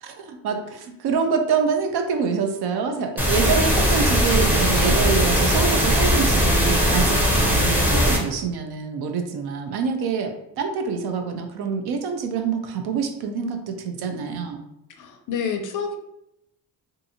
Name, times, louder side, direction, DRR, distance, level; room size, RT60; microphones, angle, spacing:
voice 1, 0.0-7.2 7.5-14.6, right 5 dB, 70° right, 6 dB, 0.5 m, -26 dB
sound 1, 3.2-8.2, equal, 5° right, 0.6 m, -19 dB
voice 2, 14.9-16.0, left 6 dB, 50° left, 5 dB, 0.5 m, -28 dB
2.6 x 2.5 x 2.7 m, 0.84 s
cardioid pair, 100°, 41 cm